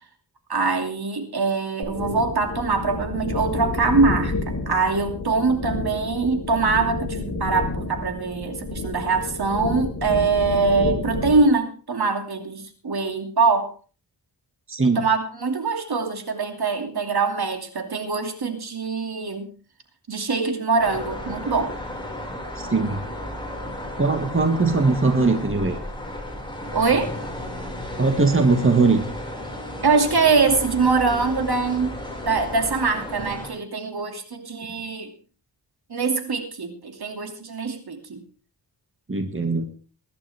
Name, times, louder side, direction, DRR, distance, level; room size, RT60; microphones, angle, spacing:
voice 1, 0.5-4.3 4.7-13.7 14.9-19.5 20.1-21.7 26.7-27.1 29.8-32.0 32.2-35.1 35.9-38.2, right 4 dB, 65° right, 5 dB, 2.8 m, -23 dB
sound 1, 1.8-11.5, left 2 dB, 45° left, 4.8 m, -30 dB
voice 2, 14.7-15.0 22.6-23.0 24.0-25.8 27.9-29.1 39.1-39.7, right 3 dB, 30° right, 6 dB, 2.1 m, -20 dB
sound 2, 20.8-33.5, left 1 dB, 10° left, 5.7 m, -34 dB
21.5 x 11.5 x 3.6 m, 0.38 s
wide cardioid pair, 75°, 41 cm